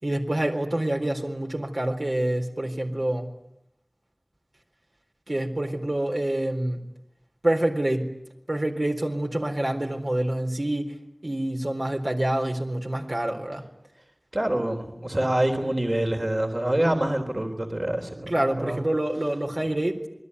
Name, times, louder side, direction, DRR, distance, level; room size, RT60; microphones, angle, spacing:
voice 1, 0.0-3.3 5.3-6.9 7.4-8.1 8.5-10.9 11.2-13.6 18.3-20.1, right 1 dB, 55° right, 1 dB, 4.0 m, -27 dB
voice 2, 14.3-18.3 18.6-18.8, right 1 dB, 40° right, 3 dB, 3.6 m, -26 dB
28.0 x 21.5 x 9.8 m, 0.85 s
wide cardioid pair, 45°, 0 cm